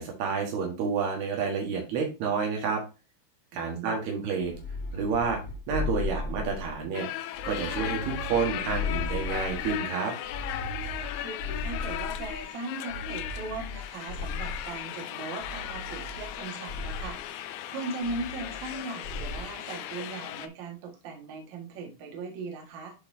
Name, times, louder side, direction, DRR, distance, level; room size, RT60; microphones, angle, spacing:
voice 1, 0.0-2.8 3.5-4.5 4.9-5.4 5.7-7.1 7.4-10.1, right 5 dB, 70° right, 2 dB, 3.4 m, -29 dB
voice 2, 3.5-4.0 11.2-17.2 17.7-22.9, right 3 dB, 55° right, 1 dB, 2.6 m, -39 dB
sound 1, 4.4-6.9 7.3-9.8 10.2-12.4 12.9-14.8 15.4-16.4 16.7-17.2 18.0-18.8 19.0-19.5, left 3 dB, 50° left, 2.1 m, -36 dB
sound 2, 6.9-20.5, left 12 dB, 80° left, 2.4 m, -37 dB
10.5 x 4.2 x 2.7 m, 0.30 s
omnidirectional pair, 4.8 m